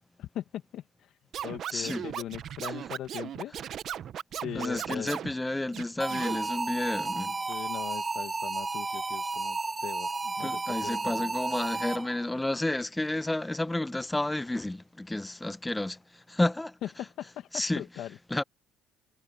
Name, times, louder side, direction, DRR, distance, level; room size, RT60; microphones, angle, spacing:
voice 1, 0.2-3.5 4.3-5.1 7.5-10.1 10.4-11.3 16.8-17.5 17.7-18.2, left 12 dB, 65° left, 2.1 m, -40 dB
Scratching (performance technique), 1.3-5.3 5.7-6.4, right 9 dB, 55° right, 1.2 m, -37 dB
voice 2, 1.7-2.1 2.6-2.7 4.5-7.4 10.4-16.8 17.5-17.8 18.3-18.4, left 1 dB, 10° left, 1.1 m, -31 dB
sound 1, 6.0-12.3, right 3 dB, 20° right, 1.9 m, -32 dB
supercardioid pair, 75°, 0 cm